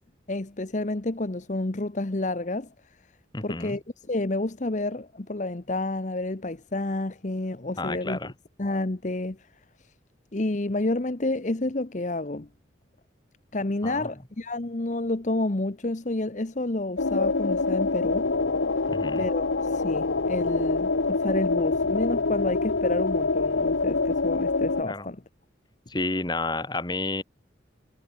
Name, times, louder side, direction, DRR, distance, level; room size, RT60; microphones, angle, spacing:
voice 1, 0.3-2.7 3.4-8.3 8.6-9.4 10.3-12.5 13.5-18.3 19.2-25.2, left 2 dB, 40° left, 1.0 m, -29 dB
voice 2, 3.3-3.8 7.8-8.3 13.8-14.1 18.9-19.3 24.9-25.1 25.9-27.2, left 2 dB, 25° left, 1.9 m, -30 dB
sound 1, 17.0-24.8, left 3 dB, 90° left, 1.1 m, -25 dB
head